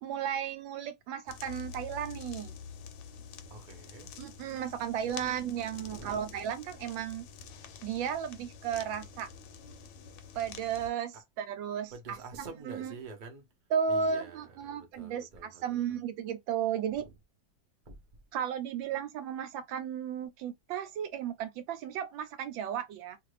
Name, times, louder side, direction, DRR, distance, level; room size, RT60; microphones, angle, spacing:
voice 1, 0.0-2.6 4.2-7.3 7.8-9.3 10.3-13.0 13.7-17.1 18.3-23.2, right 8 dB, 85° right, 1.3 m, -34 dB
sound 1, 1.3-10.9, left 6 dB, 75° left, 1.2 m, -47 dB
voice 2, 3.5-4.1 5.0-5.3 5.7-6.2 11.9-13.5 13.9-15.8 16.9-17.1 17.9-18.0, right 4 dB, 55° right, 0.5 m, -47 dB
2.9 x 2.5 x 3.1 m
omnidirectional pair, 2.0 m